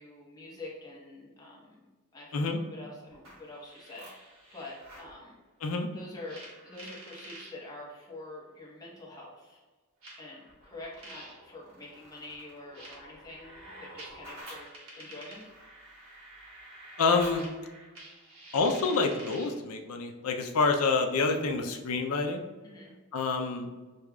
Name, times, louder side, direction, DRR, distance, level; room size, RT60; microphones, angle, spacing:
voice 1, 0.0-5.4 5.9-9.6 10.2-14.7 14.9-15.5 22.6-23.0, left 2 dB, 15° left, -4 dB, 0.9 m, -46 dB
sound 1, 3.1-5.1 6.2-7.5 8.6-8.7 10.0-19.6, right 1 dB, 65° right, 1.2 m, -48 dB
voice 2, 17.0-17.5 18.5-22.4 23.1-23.7, left 4 dB, 75° left, 4 dB, 0.5 m, -27 dB
6.4 x 2.3 x 2.3 m, 1.3 s
head